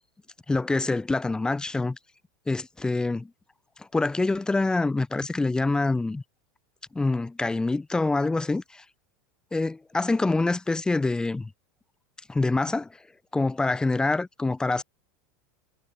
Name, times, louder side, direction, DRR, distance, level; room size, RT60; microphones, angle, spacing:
voice 1, 0.5-2.0 2.5-3.3 3.8-6.2 6.9-8.8 9.5-11.5 12.3-12.9 13.3-14.8, left 3 dB, 5° left, 0.5 m, -25 dB
supercardioid pair, 135°, 11 cm